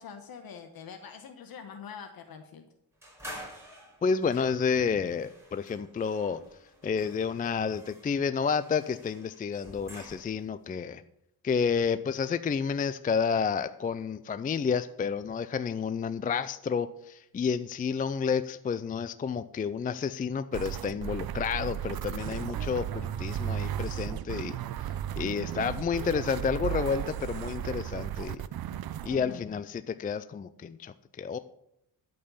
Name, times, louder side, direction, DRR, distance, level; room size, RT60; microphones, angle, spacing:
voice 1, 0.0-2.7 29.1-29.5, left 7 dB, 65° left, 6 dB, 1.2 m, -44 dB
sound 1, 3.0-10.5, equal, 5° right, 5.4 m, -49 dB
voice 2, 4.0-6.4 6.8-11.0 11.4-24.6 25.2-28.4 29.0-31.4, left 6 dB, 25° left, 13 dB, 0.4 m, -30 dB
sound 2, 20.5-29.2, right 11 dB, 70° right, 0.7 m, -35 dB
13.0 x 5.5 x 7.0 m, 0.79 s
cardioid pair, 115°, 38 cm